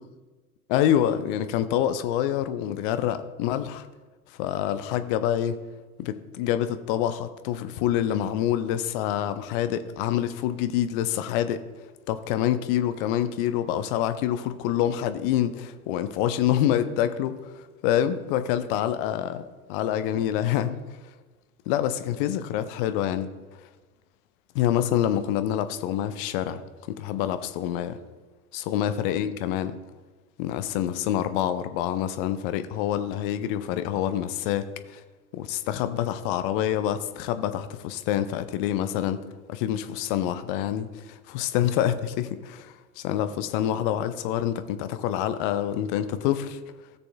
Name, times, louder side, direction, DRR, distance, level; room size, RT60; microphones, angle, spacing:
voice 1, 0.7-3.9 4.4-5.6 6.0-11.6 12.1-17.4 17.8-20.8 21.7-23.3 24.5-26.6 27.0-28.0 28.5-29.8 30.4-35.0 35.3-39.2 39.5-46.6, left 11 dB, 35° left, 11 dB, 0.7 m, -26 dB
16.5 x 6.8 x 2.3 m, 1.3 s
figure-of-eight pair, 85°, 44 cm